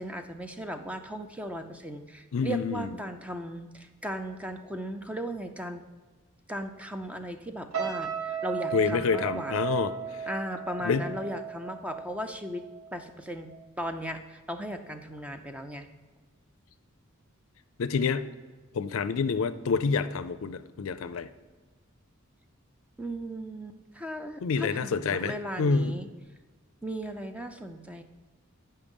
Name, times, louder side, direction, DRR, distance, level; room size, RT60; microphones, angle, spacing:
voice 1, 0.0-5.8 6.5-9.6 10.3-12.6 12.9-13.5 13.8-15.9 23.0-26.1 26.8-28.0, equal, 5° right, 7 dB, 0.5 m, -37 dB
voice 2, 2.3-3.0 8.7-10.3 10.8-11.1 17.8-18.3 18.7-21.3 24.4-26.0, left 5 dB, 70° left, 12 dB, 0.4 m, -28 dB
sound 1, 7.7-13.0 13.3-13.7, right 7 dB, 75° right, 1.0 m, -35 dB
8.4 x 5.6 x 5.3 m, 1.3 s
head